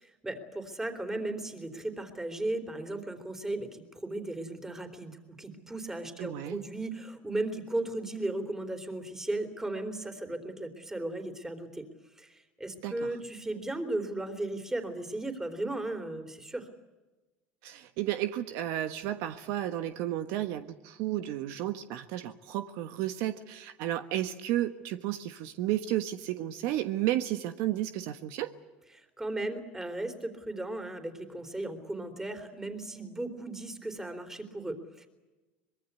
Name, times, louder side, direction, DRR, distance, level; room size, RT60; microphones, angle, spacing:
voice 1, 0.0-11.9 12.2-16.7 28.9-35.1, right 2 dB, 10° right, 6 dB, 3.7 m, -36 dB
voice 2, 6.2-6.6 12.8-13.1 17.6-28.5, right 13 dB, 65° right, 9 dB, 1.3 m, -32 dB
24.0 x 22.0 x 8.3 m, 1.1 s
supercardioid pair, 120°, 5 cm